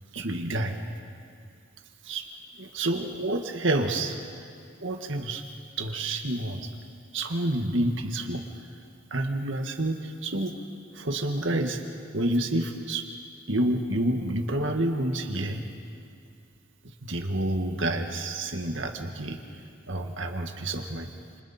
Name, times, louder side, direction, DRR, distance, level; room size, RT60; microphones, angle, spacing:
voice 1, 0.1-0.8 2.0-2.2 2.6-4.2 4.8-5.4 5.8-6.7 7.1-8.4 9.1-10.5 10.9-11.8 12.1-13.0 13.5-15.6 16.8-19.6 19.9-21.1, right 1 dB, 65° right, 4 dB, 1.8 m, -28 dB
29.5 x 28.0 x 4.4 m, 2.3 s
head